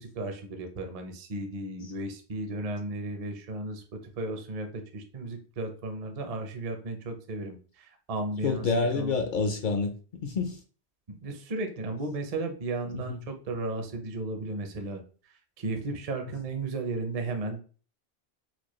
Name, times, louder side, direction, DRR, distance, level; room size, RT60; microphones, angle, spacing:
voice 1, 0.0-9.2 11.1-17.6, right 2 dB, 45° right, 0.6 m, -35 dB
voice 2, 8.4-9.9 10.2-10.6 12.9-13.2, left 4 dB, 55° left, 0.6 m, -28 dB
4.3 x 2.3 x 3.0 m
omnidirectional pair, 1.1 m